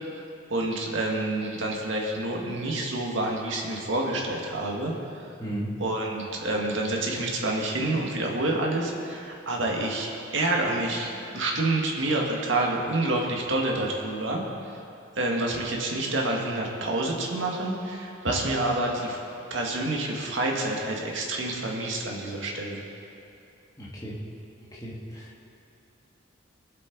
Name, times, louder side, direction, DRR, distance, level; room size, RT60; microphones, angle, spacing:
voice 1, 0.5-5.3 5.8-14.4 15.2-19.2 19.5-22.8, right 2 dB, 80° right, -1 dB, 1.9 m, -28 dB
voice 2, 23.8-24.2 24.7-25.3, right 1 dB, 20° left, -5 dB, 1.9 m, -35 dB
21.5 x 7.7 x 4.0 m, 2.7 s
head